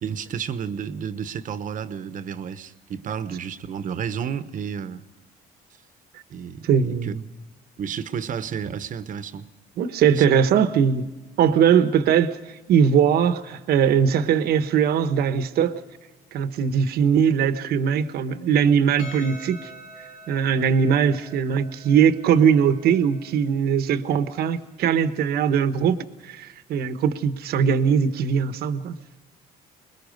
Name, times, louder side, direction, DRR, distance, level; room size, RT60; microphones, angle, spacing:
voice 1, 0.0-5.0 6.3-7.1 7.8-9.5 10.1-10.2, right 7 dB, 50° right, 1.1 m, -31 dB
voice 2, 6.6-7.2 9.8-11.1 11.4-15.8 16.3-19.7 20.3-29.0, right 7 dB, 70° right, 1.1 m, -20 dB
Percussion, 19.0-23.6, equal, 85° left, 2.9 m, -45 dB
25.0 x 21.0 x 5.3 m
cardioid pair, 110°, 17 cm